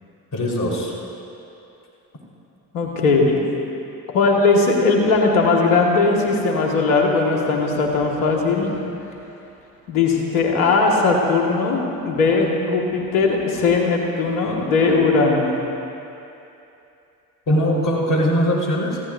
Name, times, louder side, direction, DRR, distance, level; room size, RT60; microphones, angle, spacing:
voice 1, 0.3-0.9 17.5-19.0, equal, 45° left, -3 dB, 4.4 m, -20 dB
voice 2, 2.7-3.4 4.1-8.7 9.9-15.5, left 3 dB, 90° left, 0 dB, 1.9 m, -18 dB
29.0 x 15.5 x 2.7 m, 2.8 s
hypercardioid pair, 50°, 44 cm